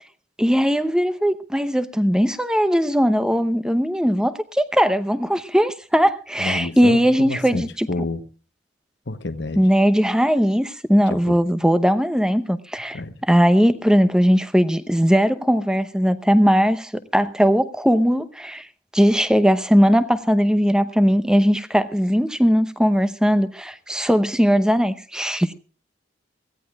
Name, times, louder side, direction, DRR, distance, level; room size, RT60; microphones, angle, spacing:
voice 1, 0.4-7.9 9.6-13.0 13.3-18.7 18.9-25.5, equal, 5° right, 0.8 m, -19 dB
voice 2, 6.4-8.2 9.1-9.6 11.1-11.4 12.9-13.2, left 2 dB, 60° left, 1.0 m, -29 dB
24.0 x 16.5 x 2.4 m
head